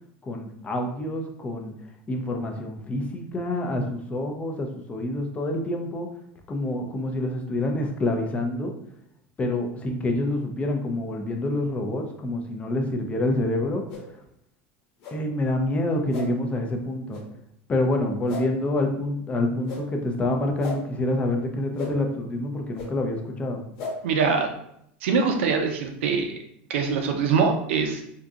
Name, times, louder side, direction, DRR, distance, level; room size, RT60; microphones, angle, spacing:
voice 1, 0.2-1.7 2.1-6.1 6.5-8.7 9.4-13.8 15.1-17.2 17.7-23.6, left 1 dB, 20° left, 3 dB, 0.5 m, -27 dB
sound 1, 13.9-14.0 15.0-15.1 16.1-16.2 17.1-17.2 18.3-18.4 19.6-19.8 20.6-20.8 21.7-21.9 22.7-22.9 23.8-23.9, left 4 dB, 55° left, 1.0 m, -34 dB
voice 2, 24.0-24.5 25.0-26.3 26.7-28.0, right 5 dB, 85° right, 4 dB, 0.6 m, -23 dB
3.6 x 2.7 x 2.4 m, 0.73 s
supercardioid pair, 130°, 6 cm